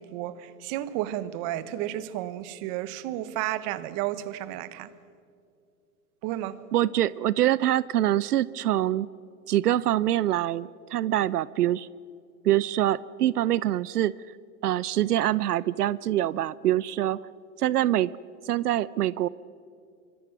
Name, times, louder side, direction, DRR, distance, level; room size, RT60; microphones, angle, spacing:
voice 1, 0.0-4.9 6.2-6.6, right 13 dB, 35° right, 1.2 m, -32 dB
voice 2, 6.7-9.1 9.5-11.9 12.4-14.1 14.6-17.2 17.6-18.1 18.5-19.3, right 13 dB, 80° right, 0.7 m, -24 dB
25.0 x 24.5 x 6.1 m
hypercardioid pair, 140°, 46 cm